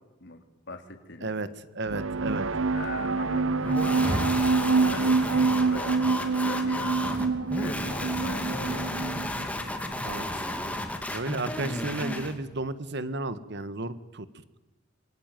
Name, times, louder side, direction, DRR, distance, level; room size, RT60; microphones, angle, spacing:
voice 1, 0.7-1.3 2.7-4.1 4.6-9.1, left 3 dB, 60° left, 6 dB, 3.2 m, -41 dB
voice 2, 1.7-2.5 10.0-10.5 11.1-14.2, right 2 dB, 60° right, 13 dB, 1.6 m, -33 dB
sound 1, 1.9-9.4, right 4 dB, 80° right, 1.1 m, -26 dB
sound 2, 3.6-12.4, left 1 dB, 5° left, 2.6 m, -33 dB
Rain, 3.7-12.8, equal, 20° right, 3.2 m, -39 dB
26.0 x 23.0 x 9.3 m, 1.1 s
head